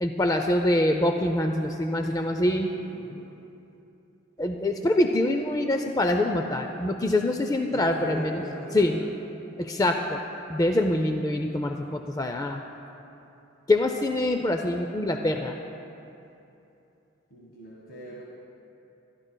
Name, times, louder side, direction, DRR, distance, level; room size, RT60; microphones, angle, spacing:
voice 1, 0.0-2.7 4.4-8.4 8.7-9.0 9.6-10.2 10.5-12.6 13.7-15.6, left 1 dB, 20° left, 4 dB, 0.4 m, -25 dB
voice 2, 2.7-3.2 4.7-4.8 7.7-9.2 17.3-18.2, equal, 70° left, -4 dB, 1.5 m, -40 dB
22.0 x 13.0 x 2.2 m, 2.8 s
head